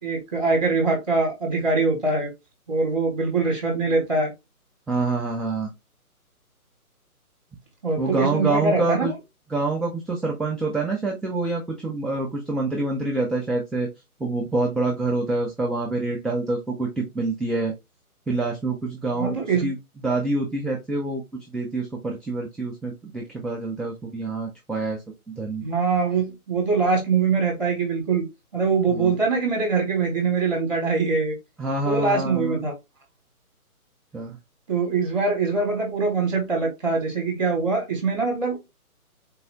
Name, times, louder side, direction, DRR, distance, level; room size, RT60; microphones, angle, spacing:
voice 1, 0.0-2.3 2.7-4.3 7.8-9.1 19.1-19.7 25.6-28.3 28.5-31.4 31.8-32.7 34.7-38.6, right 4 dB, 30° right, 0.9 m, -23 dB
voice 2, 4.9-5.7 8.0-9.1 9.5-13.9 14.2-17.7 18.3-19.7 20.0-21.2 21.5-25.0 25.3-25.6 28.9-29.1 31.6-32.6 34.1-34.4, right 3 dB, ahead, 0.3 m, -26 dB
3.7 x 2.5 x 3.0 m
hypercardioid pair, 175°, 45 cm